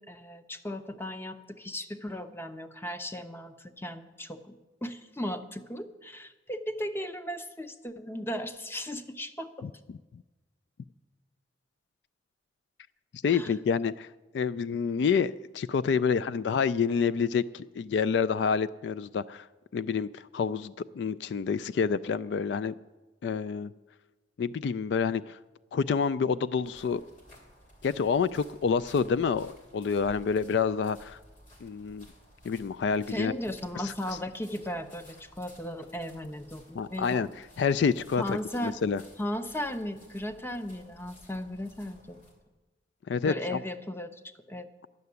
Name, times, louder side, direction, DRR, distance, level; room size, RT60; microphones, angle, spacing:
voice 1, 0.1-4.5 4.8-9.7 13.3-13.5 33.1-37.3 38.2-38.8 39.2-42.3 43.3-44.7, left 1 dB, 15° left, 9 dB, 0.6 m, -36 dB
voice 2, 9.6-10.2 13.1-14.1 14.3-19.5 19.7-22.7 23.2-23.7 24.4-25.4 25.7-27.0 27.8-31.2 31.6-32.1 32.4-33.3 33.8-33.9 36.7-37.3 37.6-39.0 43.1-43.6, left 6 dB, 65° left, 15 dB, 0.3 m, -28 dB
sound 1, 26.6-42.3, equal, 45° left, 2.9 m, -56 dB
12.0 x 6.8 x 9.5 m, 1.2 s
head